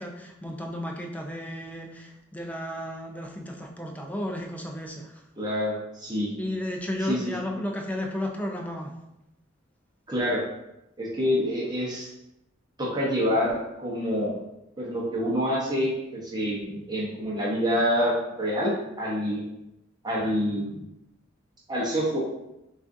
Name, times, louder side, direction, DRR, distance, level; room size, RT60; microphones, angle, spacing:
voice 1, 0.0-5.2 6.4-8.9, left 1 dB, 10° left, 1 dB, 0.5 m, -33 dB
voice 2, 5.4-6.3 7.1-7.3 10.1-10.4 11.0-12.1 12.8-14.4 14.8-19.4 20.0-20.8 21.7-22.2, equal, 20° right, -6 dB, 0.8 m, -27 dB
6.1 x 2.5 x 2.6 m, 0.89 s
head